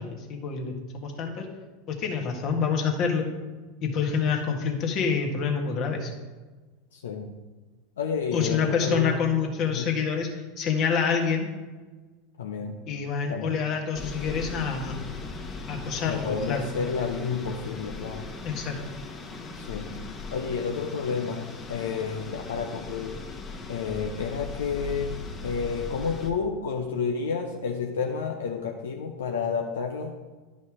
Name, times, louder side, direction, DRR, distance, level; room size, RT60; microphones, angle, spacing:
voice 1, 0.0-1.4 1.9-3.3 3.8-6.1 8.3-11.5 12.9-14.9 15.7-16.6 18.4-18.8, left 6 dB, 45° left, 3 dB, 1.6 m, -27 dB
voice 2, 6.9-7.4 8.0-9.2 9.7-9.9 12.4-12.8 13.3-13.6 16.0-18.3 19.6-20.0 20.3-23.2 23.7-30.2, left 5 dB, 80° left, 3 dB, 0.7 m, -30 dB
sound 1, 13.9-26.3, left 3 dB, 30° left, 1.3 m, -39 dB
11.0 x 5.3 x 4.8 m, 1.3 s
hypercardioid pair, 90°, 0 cm